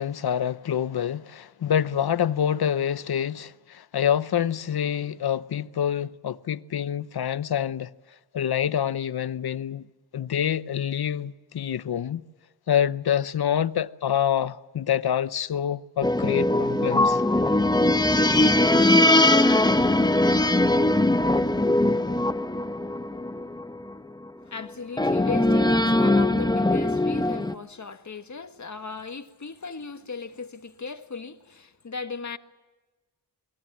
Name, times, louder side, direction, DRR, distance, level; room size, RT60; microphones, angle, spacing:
voice 1, 0.0-7.9 8.3-9.8 10.1-12.2 12.7-17.2, left 9 dB, 65° left, 0.9 m, -26 dB
sound 1, 16.0-23.9 25.0-27.5, left 1 dB, 10° left, 1.0 m, -21 dB
voice 2, 24.4-32.4, left 4 dB, 45° left, 1.7 m, -37 dB
28.0 x 21.5 x 7.4 m
wide cardioid pair, 80°, 41 cm